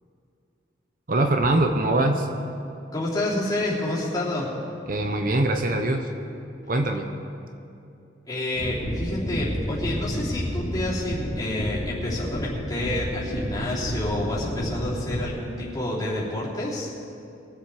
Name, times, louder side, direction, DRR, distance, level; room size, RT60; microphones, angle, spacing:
voice 1, 1.1-2.3 4.9-6.1 6.7-7.1, right 2 dB, 50° right, 5 dB, 0.8 m, -22 dB
voice 2, 2.9-4.5 8.2-16.9, left 1 dB, 20° left, -8 dB, 3.3 m, -29 dB
sound 1, 8.5-15.2, equal, 75° left, 2.8 m, -30 dB
23.0 x 7.9 x 4.9 m, 2.7 s
head